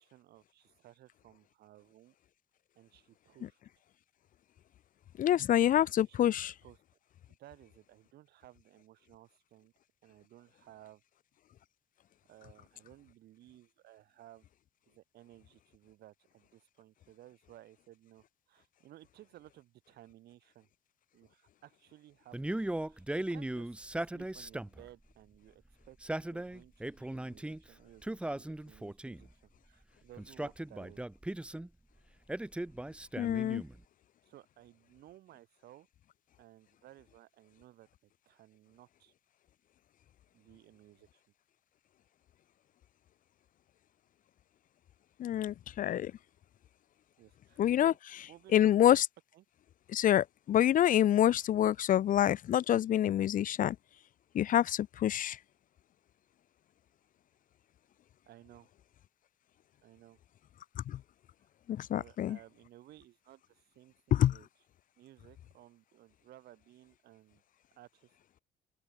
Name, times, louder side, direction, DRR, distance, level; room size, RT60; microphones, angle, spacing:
voice 1, 0.0-2.1 2.8-3.6 5.3-5.4 6.1-6.8 7.3-9.7 10.0-11.0 12.3-14.5 14.9-20.7 21.1-31.0 34.3-35.9 36.4-39.1 40.3-41.2 47.2-48.0 48.3-48.8 49.3-49.4 58.3-58.7 59.8-60.2 61.9-64.5 65.0-67.4 67.8-68.1, right 14 dB, 70° right, 5.7 m, -58 dB
voice 2, 5.2-6.5 33.2-33.6 45.2-46.1 47.6-47.9 48.5-49.1 49.9-53.8 54.3-55.4 60.9-61.0 61.7-62.4 64.1-64.3, left 11 dB, 55° left, 0.8 m, -27 dB
Male speech man speaking, 22.3-24.9 25.8-27.6 28.0-29.3 30.2-31.7 32.3-33.8, right 1 dB, 5° right, 1.1 m, -38 dB
open air
cardioid pair, 110°, 17 cm